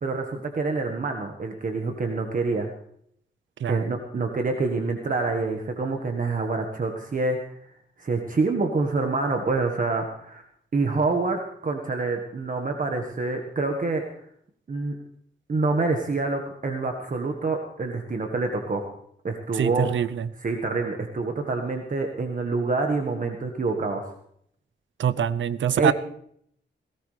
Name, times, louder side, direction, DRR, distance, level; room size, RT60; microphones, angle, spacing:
voice 1, 0.0-2.7 3.7-7.4 8.0-10.4 10.7-14.0 14.7-15.0 15.5-18.8 19.2-20.1 20.4-24.0 25.8-25.9, right 3 dB, 45° right, 3 dB, 1.5 m, -26 dB
voice 2, 19.6-20.3 25.0-25.9, right 8 dB, 85° right, 16 dB, 0.6 m, -24 dB
18.0 x 17.5 x 3.3 m, 0.68 s
wide cardioid pair, 120°, 19 cm